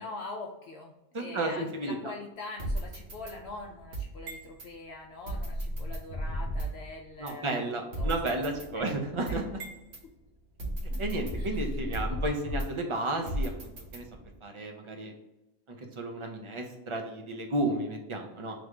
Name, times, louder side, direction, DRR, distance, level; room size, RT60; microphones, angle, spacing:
voice 1, 0.0-7.7 8.0-8.3 8.7-8.9 9.3-9.4 10.9-11.0 11.3-11.7, left 3 dB, 65° left, 1 dB, 0.8 m, -43 dB
voice 2, 1.1-2.1 7.2-9.6 11.0-14.0 14.4-15.1 15.7-18.5, right 2 dB, 35° right, 2 dB, 0.5 m, -33 dB
sound 1, 2.6-4.7 5.3-6.9 7.3-7.4 7.9-10.0 10.6-12.9 13.3-14.3, right 1 dB, 60° right, 1.2 m, -35 dB
3.4 x 3.3 x 3.7 m, 0.95 s
omnidirectional pair, 1.3 m